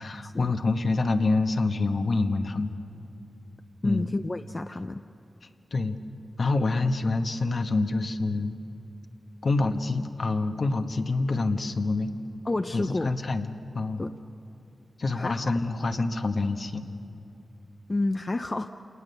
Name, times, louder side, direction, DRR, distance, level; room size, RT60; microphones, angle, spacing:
voice 1, 0.0-2.7 3.8-4.1 5.7-6.0 6.4-8.5 9.4-12.1 12.7-14.0 15.0-16.8, left 3 dB, 60° left, 6 dB, 1.2 m, -26 dB
voice 2, 3.8-5.0 12.4-13.1 14.0-14.1 15.1-15.5 17.9-18.7, left 2 dB, 30° left, 8 dB, 0.5 m, -29 dB
28.0 x 19.5 x 6.9 m, 2.8 s
wide cardioid pair, 100°, 0 cm